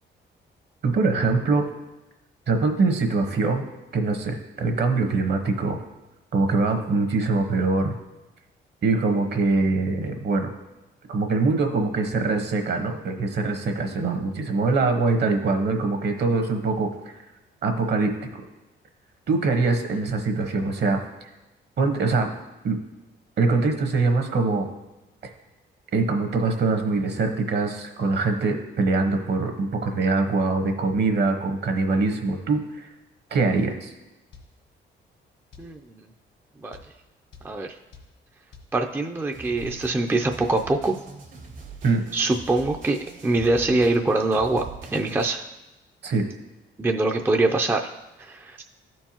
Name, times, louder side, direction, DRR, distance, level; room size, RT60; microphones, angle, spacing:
voice 1, 0.8-1.6 2.5-3.7 3.9-5.8 6.3-7.9 8.8-10.5 11.1-17.1 17.6-18.1 19.3-21.0 21.8-22.3 22.6-22.8 23.4-24.7 25.9-32.9 33.3-33.9 41.8-42.0 46.0-46.2, right 3 dB, 60° right, 5 dB, 1.1 m, -23 dB
sound 1, 34.3-34.5 35.5-35.7 36.7-36.9 37.3-37.5 37.9-38.1 38.5-38.7, left 4 dB, 75° left, 1.4 m, -47 dB
voice 2, 38.7-40.9 42.1-43.0 43.2-44.6 44.9-45.4 46.8-47.8 48.2-48.6, right 2 dB, 10° right, 3 dB, 0.4 m, -23 dB
sound 2, 39.3-45.3, right 4 dB, 85° right, 1.7 m, -42 dB
13.0 x 4.5 x 2.9 m, 1.0 s
cardioid pair, 90°, 20 cm